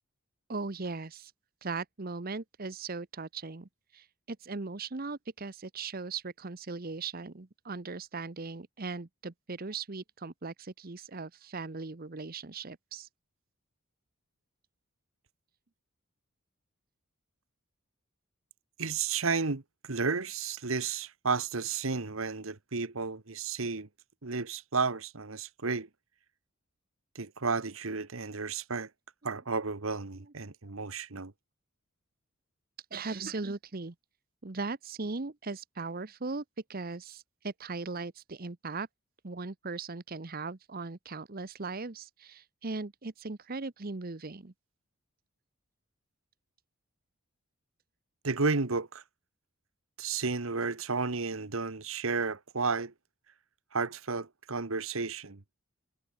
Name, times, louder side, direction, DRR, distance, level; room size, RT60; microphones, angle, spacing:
voice 1, 0.5-1.3 1.6-13.1 30.2-30.3 30.6-31.2 32.9-33.9 34.4-36.4 36.7-38.9 39.2-44.5, right 3 dB, 45° right, 0.9 m, -39 dB
voice 2, 18.8-23.9 24.2-25.9 27.1-28.9 29.2-31.3 48.2-49.0 50.0-52.9 53.7-55.4, right 4 dB, 70° right, 1.3 m, -32 dB
head